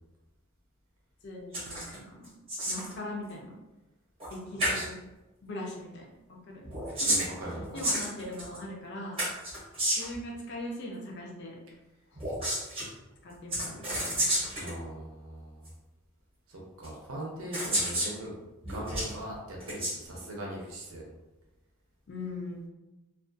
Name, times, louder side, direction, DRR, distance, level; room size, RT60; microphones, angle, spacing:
voice 1, 1.2-2.3 2.6-3.5 4.3-5.0 5.4-7.2 7.7-9.2 10.0-11.6 12.1-12.2 13.2-14.2 22.1-22.7, left 1 dB, 50° left, -1 dB, 0.5 m, -40 dB
sound 1, 1.5-2.0 2.2-2.9 4.2-4.3 4.6-4.9 6.6-8.6 9.2-10.2 12.2-12.9 13.5-14.7 15.7-15.8 16.8-16.9 17.5-18.1 18.6-19.1 19.6-20.0, right 1 dB, 25° right, 0.8 m, -30 dB
voice 2, 7.0-7.9 14.5-15.7 16.5-18.4 18.7-21.1, right 1 dB, 70° right, -2 dB, 0.6 m, -40 dB
2.4 x 2.3 x 2.5 m, 1.0 s
head